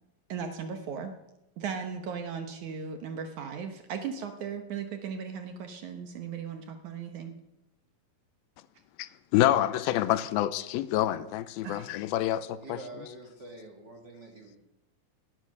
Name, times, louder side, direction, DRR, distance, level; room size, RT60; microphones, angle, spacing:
voice 1, 0.3-1.1 1.6-7.3 11.6-11.9, right 6 dB, 65° right, 2.2 m, -37 dB
voice 2, 9.0-12.8, left 13 dB, 85° left, 2.5 m, -27 dB
voice 3, 12.6-14.6, right 2 dB, 40° right, 1.8 m, -46 dB
19.5 x 11.0 x 6.5 m
omnidirectional pair, 4.4 m